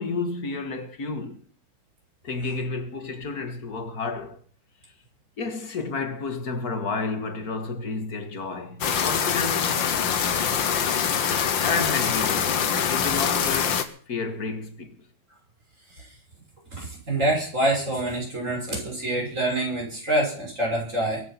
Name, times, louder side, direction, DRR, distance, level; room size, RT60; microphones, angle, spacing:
voice 1, 0.0-1.4 2.2-4.4 5.4-10.1 11.6-15.0, left 4 dB, 45° left, 2.1 m, -31 dB
sound 1, 8.8-13.8, left 7 dB, 65° left, 1.9 m, -24 dB
voice 2, 16.7-21.2, right 1 dB, 35° right, 6.2 m, -26 dB
23.5 x 8.4 x 6.0 m
omnidirectional pair, 2.3 m